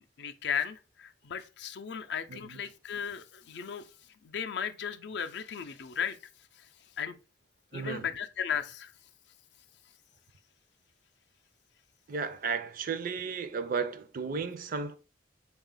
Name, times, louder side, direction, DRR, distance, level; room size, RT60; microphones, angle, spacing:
voice 1, 0.2-3.9 4.2-6.2 6.6-6.7 7.0-7.2 7.7-8.9, left 7 dB, 65° left, 0.4 m, -35 dB
voice 2, 7.7-8.1 12.1-15.0, right 5 dB, 50° right, 0.4 m, -34 dB
3.9 x 2.3 x 3.7 m
head